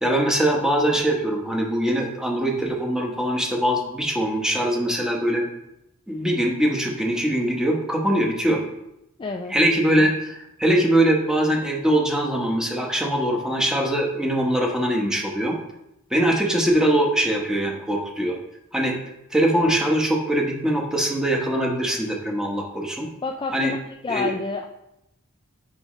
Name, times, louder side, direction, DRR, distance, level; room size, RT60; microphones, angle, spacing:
voice 1, 0.0-5.5 6.1-8.6 9.5-15.6 16.1-18.4 18.7-19.0 19.3-23.1 23.5-23.7 24.1-24.3, right 1 dB, 5° right, 0 dB, 1.1 m, -22 dB
voice 2, 9.2-9.5 23.2-23.8 24.0-24.6, left 3 dB, 20° left, 2 dB, 0.3 m, -28 dB
8.8 x 4.9 x 3.2 m, 0.84 s
head